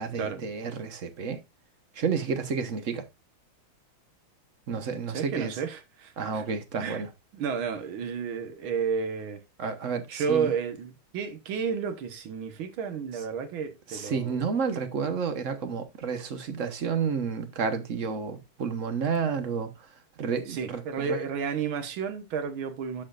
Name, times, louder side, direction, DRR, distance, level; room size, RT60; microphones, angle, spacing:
voice 1, 0.0-1.4 1.9-3.0 4.7-5.6 6.2-7.1 9.6-10.5 13.9-19.9 20.2-21.3, right 5 dB, 45° right, 1.2 m, -30 dB
voice 2, 5.1-6.4 6.8-7.0 7.3-9.4 10.1-14.3 20.5-23.0, right 6 dB, 75° right, 2.0 m, -31 dB
13.5 x 4.9 x 2.4 m
omnidirectional pair, 2.3 m